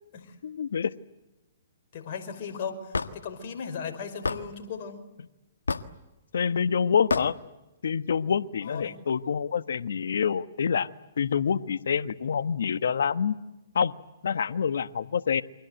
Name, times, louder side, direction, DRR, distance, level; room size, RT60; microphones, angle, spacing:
voice 1, 0.4-0.9 6.3-7.3 7.8-10.9 11.2-13.3 13.7-13.9 14.2-15.4, left 7 dB, 70° left, 13 dB, 1.3 m, -26 dB
voice 2, 1.9-5.1 8.6-9.0, left 6 dB, 50° left, 5 dB, 5.2 m, -37 dB
Hammer / Wood, 2.9-3.1 4.2-4.4 5.7-6.0 7.1-7.3, left 4 dB, 90° left, 1.5 m, -27 dB
29.0 x 24.5 x 8.0 m, 1.0 s
hypercardioid pair, 130°, 0 cm